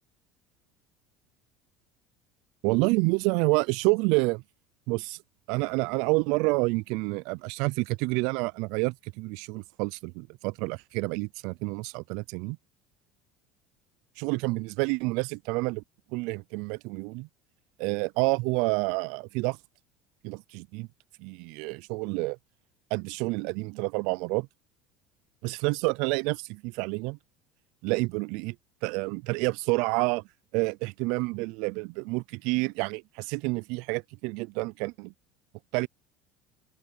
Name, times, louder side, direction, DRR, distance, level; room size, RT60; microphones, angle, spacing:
voice 1, 2.6-4.4 4.9-5.2 5.5-12.6 14.2-15.8 16.1-17.3 17.8-19.6 20.2-20.9 21.2-22.4 22.9-24.5 25.4-27.2 27.8-28.6 28.8-30.2 30.5-35.1 35.7-35.9, right 27 dB, 75° right, 0.4 m, -28 dB
open air
supercardioid pair, 100°, 0 cm